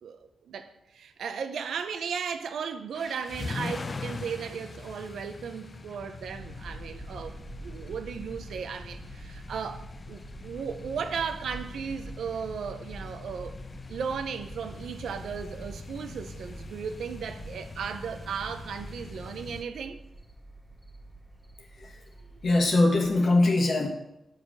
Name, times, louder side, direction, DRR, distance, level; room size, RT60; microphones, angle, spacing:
voice 1, 0.0-13.6 13.9-20.0, right 6 dB, 85° right, 0.6 m, -36 dB
sound 1, 2.9-19.6, left 3 dB, 35° left, 0.4 m, -42 dB
sound 2, 6.2-23.2, right 1 dB, 5° left, 1.2 m, -46 dB
voice 2, 22.4-23.9, left 2 dB, 65° left, 1.6 m, -22 dB
7.4 x 5.0 x 6.2 m
cardioid pair, 95°, 0 cm